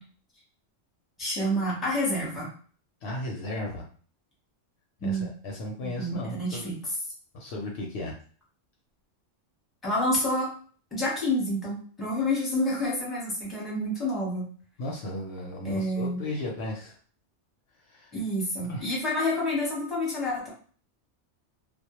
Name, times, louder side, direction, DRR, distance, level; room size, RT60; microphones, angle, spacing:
voice 1, 1.2-2.5 5.0-5.3 5.8-6.8 9.8-10.5 10.9-14.4 15.6-16.2 18.1-20.5, left 1 dB, ahead, -4 dB, 0.7 m, -28 dB
voice 2, 3.0-3.8 5.0-6.7 7.3-8.2 14.8-17.0 17.9-18.1 18.7-18.9, left 1 dB, 70° left, 0 dB, 0.8 m, -35 dB
2.1 x 2.0 x 2.9 m, 0.43 s
omnidirectional pair, 1.2 m